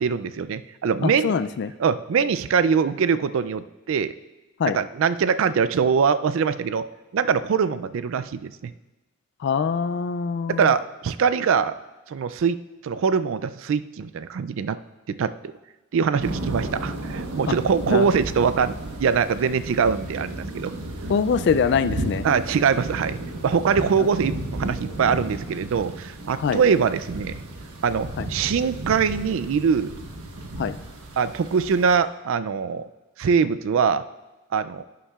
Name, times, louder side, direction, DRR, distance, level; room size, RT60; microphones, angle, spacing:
voice 1, 0.0-1.3 1.8-4.1 4.6-6.8 7.1-8.7 10.5-11.7 12.1-14.8 15.1-15.3 15.9-18.7 19.0-20.7 22.2-23.2 23.4-27.4 27.8-30.0 31.2-32.8 33.2-34.0 34.5-34.8, right 6 dB, 60° right, 13 dB, 0.3 m, -23 dB
voice 2, 1.0-1.7 4.6-4.8 9.4-10.7 17.5-17.6 17.9-18.1 21.1-22.3 26.4-26.6 28.2-28.3 30.6-30.8, left 6 dB, 50° left, 12 dB, 0.3 m, -23 dB
sound 1, 16.2-31.9, right 1 dB, 80° right, 1.2 m, -33 dB
11.0 x 9.9 x 2.4 m, 1.1 s
head